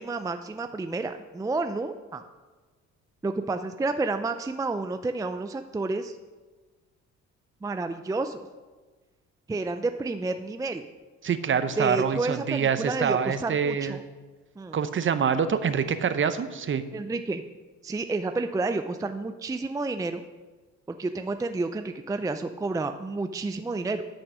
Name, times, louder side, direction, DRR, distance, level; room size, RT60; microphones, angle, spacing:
voice 1, 0.0-2.2 3.2-6.2 7.6-8.4 9.5-10.8 11.8-14.0 14.6-14.8 16.9-17.4 17.8-20.2 20.9-24.1, right 3 dB, 10° right, 8 dB, 0.4 m, -30 dB
voice 2, 11.2-14.0 14.7-16.8, right 7 dB, 40° right, 11 dB, 0.7 m, -26 dB
9.7 x 6.2 x 6.2 m, 1.3 s
cardioid pair, 90°, 30 cm